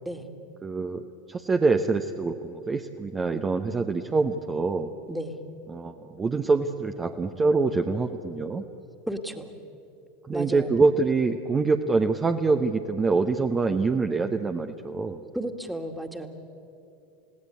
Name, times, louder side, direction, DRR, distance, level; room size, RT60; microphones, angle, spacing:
voice 1, 0.6-1.0 1.3-4.9 5.7-8.6 10.3-15.2, right 4 dB, 20° right, 5 dB, 1.0 m, -25 dB
voice 2, 9.1-9.5 10.3-10.7 15.3-16.3, right 1 dB, ahead, 5 dB, 2.1 m, -33 dB
30.0 x 17.5 x 8.3 m, 2.8 s
figure-of-eight pair, 80°, 0 cm